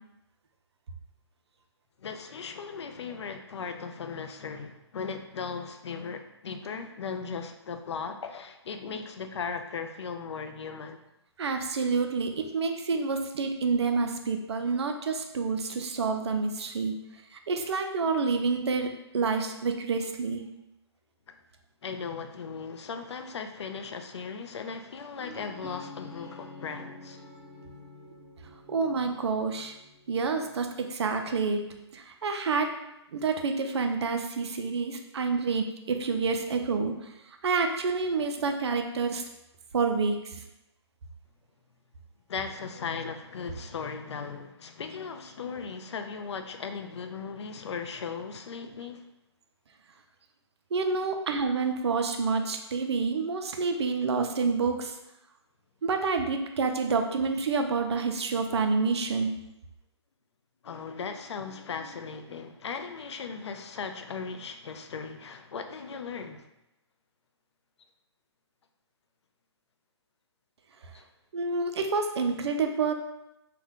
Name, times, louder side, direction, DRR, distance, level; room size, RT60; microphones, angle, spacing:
voice 1, 2.0-11.0 21.8-27.2 42.3-49.0 60.6-66.5 70.9-71.0, left 5 dB, 70° left, 7 dB, 0.4 m, -37 dB
voice 2, 11.4-16.9 17.3-20.4 28.7-29.7 30.1-31.6 31.9-32.7 33.1-37.1 37.4-39.2 39.7-40.4 50.7-54.9 55.8-59.3 71.3-72.9, right 4 dB, 65° right, 5 dB, 0.4 m, -28 dB
sound 1, 25.2-31.0, left 2 dB, 15° left, 0.6 m, -48 dB
2.5 x 2.2 x 3.5 m, 0.86 s
hypercardioid pair, 145°, 15 cm